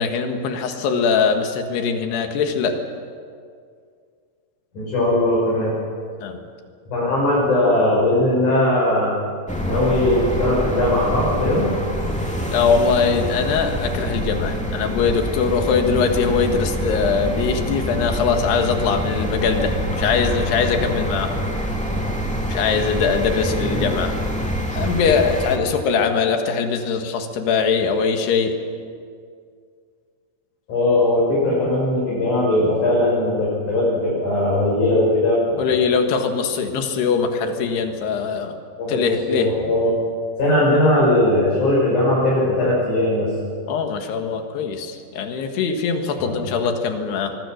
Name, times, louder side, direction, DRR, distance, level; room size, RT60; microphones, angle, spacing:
voice 1, 0.0-2.8 6.2-6.4 12.5-21.4 22.5-24.2 24.7-28.5 35.6-38.6 38.9-39.5 43.7-47.4, left 5 dB, 70° left, 5 dB, 3.7 m, -21 dB
voice 2, 4.7-5.7 6.9-9.1 9.6-11.7 23.3-23.9 30.7-35.7 38.8-39.9 40.4-43.3 46.2-46.4, left 1 dB, 45° left, -8 dB, 7.4 m, -19 dB
sound 1, 9.5-25.6, equal, 5° left, 1.0 m, -26 dB
25.0 x 22.0 x 6.6 m, 2.2 s
omnidirectional pair, 5.1 m